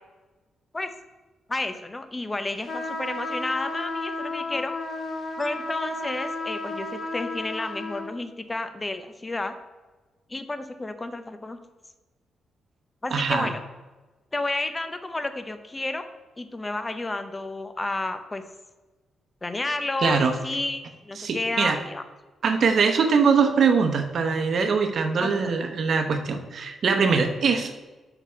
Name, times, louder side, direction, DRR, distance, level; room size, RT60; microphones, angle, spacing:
voice 1, 1.5-4.7 5.4-9.5 10.3-11.6 13.0-13.6 14.3-16.1 16.4-18.4 19.4-22.0 25.2-25.5, left 2 dB, 20° left, 9 dB, 0.6 m, -31 dB
sound 1, 2.7-8.1, left 2 dB, 45° left, 1.0 m, -33 dB
voice 2, 13.1-13.5 20.0-20.3 21.2-21.8 22.4-27.7, right 5 dB, 55° right, 5 dB, 0.9 m, -22 dB
6.5 x 5.8 x 5.7 m, 1.2 s
cardioid pair, 120°, 0 cm